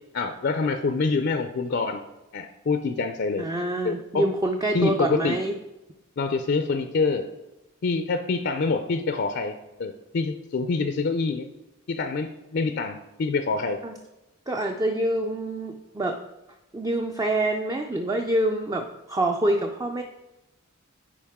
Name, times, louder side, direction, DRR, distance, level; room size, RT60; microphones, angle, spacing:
voice 1, 0.1-2.0 2.3-3.5 3.8-4.2 4.7-5.4 6.2-7.3 7.8-9.5 9.8-11.5 11.9-13.8, left 4 dB, 55° left, 8 dB, 0.4 m, -26 dB
voice 2, 3.4-5.5 13.8-14.0 14.5-16.2 16.7-20.0, right 1 dB, 15° right, 3 dB, 0.4 m, -26 dB
10.0 x 4.6 x 3.6 m, 1.0 s
head